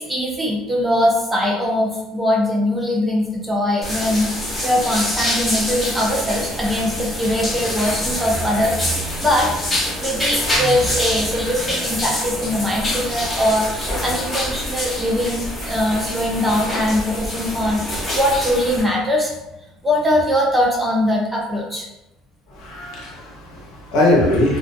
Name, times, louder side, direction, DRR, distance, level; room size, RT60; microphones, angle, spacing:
voice 1, 0.0-19.3 19.8-21.9, left 1 dB, 5° right, -3 dB, 0.4 m, -21 dB
sound 1, 3.8-18.8, left 1 dB, 15° left, 0.7 m, -26 dB
voice 2, 22.5-24.6, left 1 dB, 75° left, -3 dB, 0.7 m, -20 dB
2.2 x 2.2 x 2.5 m, 0.93 s
cardioid pair, 160°, 0 cm